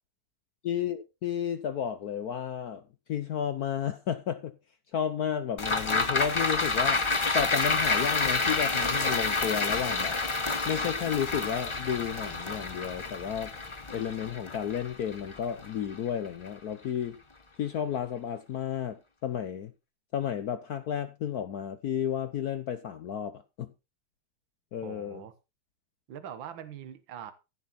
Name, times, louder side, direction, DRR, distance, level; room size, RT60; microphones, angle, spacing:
voice 1, 0.6-2.8 3.1-4.5 4.9-7.0 7.3-10.2 10.7-13.5 13.9-17.2 17.6-19.7 20.1-23.7 24.7-25.2, left 8 dB, 65° left, 0.9 m, -32 dB
sound 1, 5.6-16.1 16.5-16.6, left 3 dB, 50° left, 0.3 m, -29 dB
voice 2, 24.8-25.3 26.1-27.3, right 9 dB, 65° right, 1.9 m, -42 dB
15.5 x 6.8 x 4.1 m
omnidirectional pair, 2.4 m